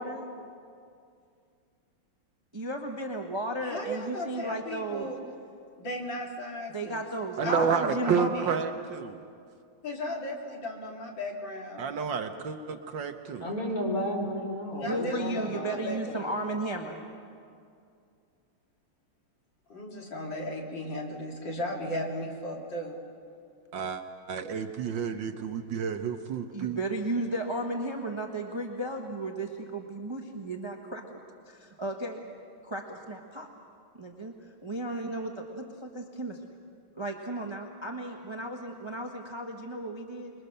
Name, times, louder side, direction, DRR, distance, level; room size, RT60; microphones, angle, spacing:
voice 1, 0.0-0.4 2.5-5.1 6.7-8.5 14.8-17.0 26.5-31.2 31.5-32.2 32.6-33.5 33.9-34.3 34.6-36.4 37.0-40.3, right 1 dB, 15° right, 2 dB, 1.2 m, -34 dB
voice 2, 3.6-5.2 5.8-7.0 7.4-8.6 9.8-11.9 14.7-16.3 19.7-23.0, left 1 dB, 60° left, 0 dB, 3.1 m, -36 dB
voice 3, 7.4-9.2 11.8-13.4 23.7-24.0 24.3-26.8, right 6 dB, 65° right, 7 dB, 1.5 m, -30 dB
voice 4, 13.4-15.8, equal, 40° left, 0 dB, 4.4 m, -32 dB
26.5 x 22.0 x 6.7 m, 2.4 s
omnidirectional pair, 2.3 m